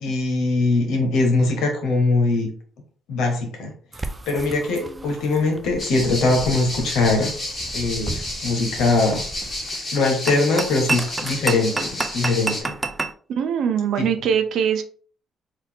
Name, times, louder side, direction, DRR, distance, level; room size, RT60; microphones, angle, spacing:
voice 1, 0.0-2.5 3.1-3.7 4.3-7.3 7.7-9.3 9.9-11.9 12.1-12.7 14.0-14.1, left 3 dB, 85° left, 3 dB, 1.2 m, -21 dB
sound 1, 3.9-13.1, right 3 dB, 20° right, 0.5 m, -31 dB
sound 2, 5.8-12.6, left 1 dB, 45° left, 2.0 m, -31 dB
voice 2, 13.3-14.8, right 8 dB, 75° right, 8 dB, 0.6 m, -22 dB
3.9 x 2.7 x 3.5 m, 0.44 s
cardioid pair, 90°, 0 cm